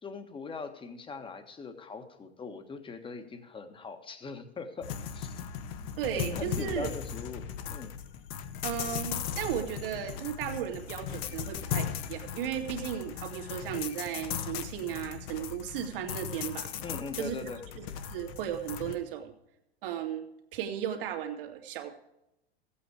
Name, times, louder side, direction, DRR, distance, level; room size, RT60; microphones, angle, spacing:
voice 1, 0.0-5.5 5.8-7.4 7.7-7.9 16.8-17.6, left 4 dB, 15° left, 7 dB, 1.5 m, -41 dB
sound 1, 4.8-19.0, left 8 dB, 50° left, 1.3 m, -37 dB
voice 2, 6.0-6.9 8.6-16.7 17.2-17.3 17.8-19.3 19.8-20.2 20.5-21.9, right 10 dB, 60° right, 4 dB, 2.3 m, -35 dB
15.5 x 8.6 x 4.8 m, 0.86 s
figure-of-eight pair, 95°, 31 cm